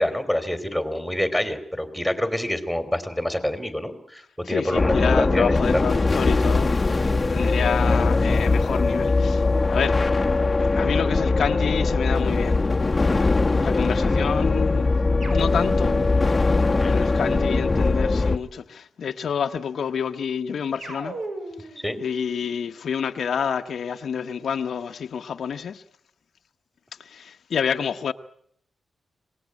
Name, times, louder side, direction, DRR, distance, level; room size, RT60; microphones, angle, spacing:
voice 1, 0.0-5.8 7.4-7.5 16.8-16.9 21.8-22.0, left 1 dB, ahead, 3.1 m, -26 dB
voice 2, 4.4-7.0 7.3-10.0 10.8-12.6 13.5-14.9 15.3-16.0 16.8-21.2 21.6-25.8 27.0-28.1, left 7 dB, 75° left, 0.9 m, -28 dB
sound 1, 4.7-18.4, left 3 dB, 25° left, 1.1 m, -21 dB
sound 2, 15.2-17.7 20.8-21.8, right 2 dB, 70° right, 7.3 m, -37 dB
25.5 x 18.5 x 9.5 m
wide cardioid pair, 110°, 0 cm